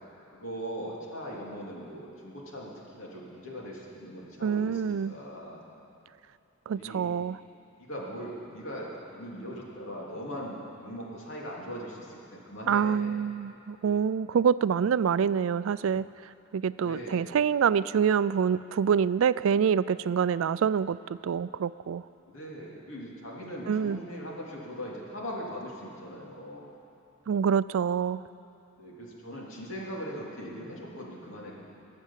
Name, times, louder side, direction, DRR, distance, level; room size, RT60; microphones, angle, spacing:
voice 1, 0.3-5.6 6.8-7.1 7.8-13.1 16.8-17.4 22.2-26.7 28.8-31.7, equal, 70° left, -3 dB, 3.0 m, -40 dB
voice 2, 4.4-5.1 6.7-7.4 12.7-16.1 16.5-22.0 23.7-24.0 27.3-28.2, right 7 dB, 70° right, 17 dB, 0.3 m, -26 dB
21.5 x 7.6 x 7.3 m, 2.9 s
head